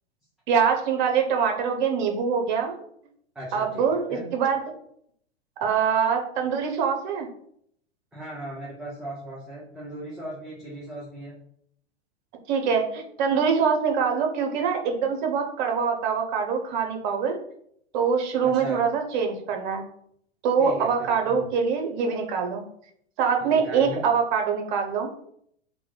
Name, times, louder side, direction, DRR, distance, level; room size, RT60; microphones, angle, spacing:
voice 1, 0.5-2.8 3.5-4.1 4.3-4.6 5.6-7.3 12.5-17.4 17.9-19.8 20.4-22.7 23.2-25.1, right 6 dB, 45° right, 3 dB, 0.8 m, -24 dB
voice 2, 3.3-4.3 8.1-11.3 18.4-18.8 20.6-21.5 23.4-24.0, right 1 dB, ahead, -7 dB, 0.7 m, -37 dB
3.0 x 2.2 x 3.8 m, 0.68 s
figure-of-eight pair, 95°, 33 cm